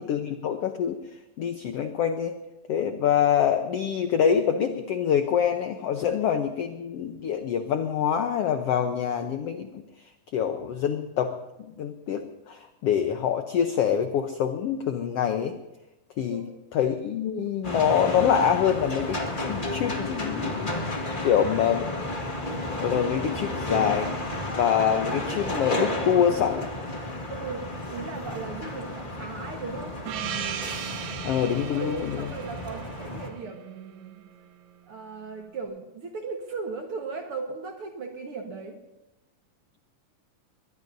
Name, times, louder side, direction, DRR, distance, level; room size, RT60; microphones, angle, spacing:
voice 1, 0.1-1.0 1.4-2.4 2.7-9.7 10.3-15.6 16.2-16.4 16.7-19.2 19.5-20.8 21.2-21.8 22.8-24.1 24.5-26.6 31.2-32.2, left 8 dB, 85° left, 6 dB, 1.3 m, -25 dB
voice 2, 16.3-16.6 21.2-21.7 27.3-30.0 31.7-34.2 34.9-38.8, right 4 dB, 55° right, 3 dB, 1.8 m, -37 dB
sound 1, 17.6-33.3, left 1 dB, 30° left, 0.9 m, -32 dB
Gong, 30.1-34.4, right 9 dB, 90° right, 2.7 m, -37 dB
22.0 x 20.5 x 2.7 m, 0.98 s
omnidirectional pair, 3.9 m